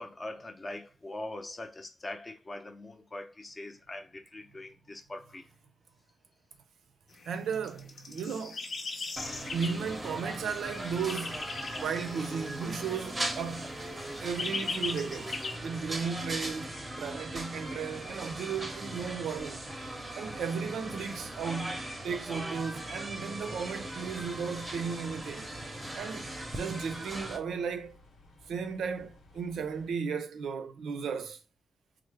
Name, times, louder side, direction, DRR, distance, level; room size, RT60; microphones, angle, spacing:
voice 1, 0.0-5.6, left 2 dB, 25° left, 0.6 m, -42 dB
sound 1, 7.2-13.3 13.6-15.6, left 4 dB, 65° left, 0.7 m, -39 dB
voice 2, 7.2-8.6 9.5-11.4 11.7-13.7 14.2-19.7 20.2-21.8 22.0-25.5 25.9-28.0 28.5-31.4, right 6 dB, 90° right, 0.5 m, -35 dB
sound 2, 9.2-27.4, right 1 dB, 15° right, 0.7 m, -39 dB
sound 3, 24.6-29.9, left 1 dB, 85° left, 1.0 m, -58 dB
3.2 x 2.0 x 3.2 m
cardioid pair, 110°, 0 cm